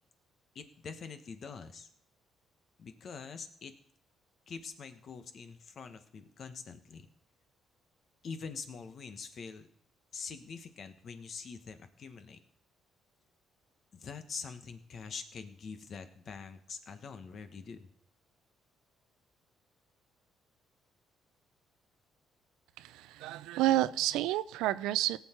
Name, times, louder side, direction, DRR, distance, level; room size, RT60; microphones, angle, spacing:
voice 1, 0.5-1.9 2.8-3.7 4.5-7.1 8.2-9.7 10.1-12.4 13.9-17.9, left 5 dB, 55° left, 9 dB, 1.3 m, -44 dB
voice 2, 22.8-25.2, right 14 dB, 90° right, 16 dB, 0.4 m, -30 dB
17.5 x 7.2 x 4.5 m, 0.66 s
cardioid pair, 80°, 0 cm